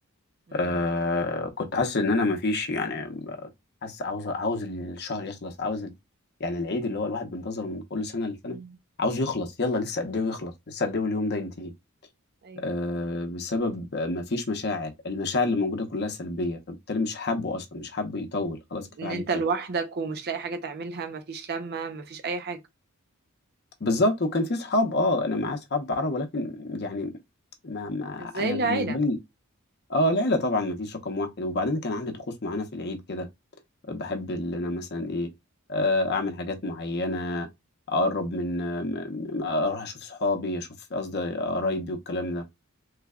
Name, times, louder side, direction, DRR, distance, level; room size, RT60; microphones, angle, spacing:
voice 1, 0.5-3.5 3.8-5.9 6.4-8.6 9.0-11.7 12.6-19.4 23.8-27.1 27.6-29.2 29.9-33.3 33.9-35.3 35.7-37.5 37.9-42.4, left 2 dB, 50° left, 0.7 m, -28 dB
voice 2, 19.0-22.6 28.2-29.0, right 4 dB, 50° right, 0.5 m, -31 dB
3.2 x 2.2 x 3.5 m
head